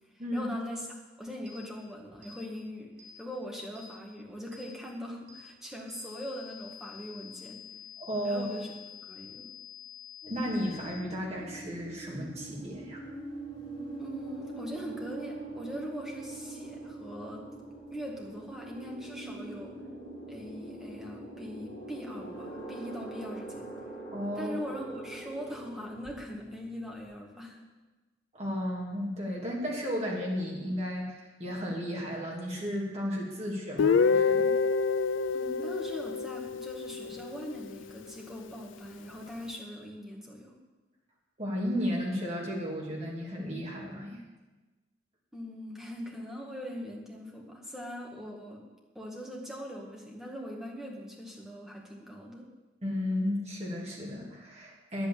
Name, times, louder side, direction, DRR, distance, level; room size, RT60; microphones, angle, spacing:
voice 1, 0.3-0.9 1.2-2.9 3.2-7.6 8.2-8.7 9.0-9.5 14.0-17.5 17.9-19.8 20.3-23.7 24.3-27.6 35.3-40.5 45.3-48.6 49.0-52.5, equal, 5° right, -2 dB, 2.0 m, -41 dB
sound 1, 1.5-1.6 2.2-2.4 3.0-3.2 3.8-3.9 4.5-4.7 5.3-5.4 5.9-10.9, left 9 dB, 65° right, 2.7 m, -48 dB
voice 2, 8.0-8.5 10.3-13.0 24.1-24.5 28.3-34.5 41.4-44.2 52.8-55.1, equal, 35° right, -3 dB, 2.9 m, -34 dB
sound 2, 10.2-27.1, right 2 dB, 30° left, 3.5 m, -43 dB
Guitar, 33.8-37.6, left 5 dB, 90° left, 0.4 m, -27 dB
10.0 x 8.3 x 8.8 m, 1.2 s
head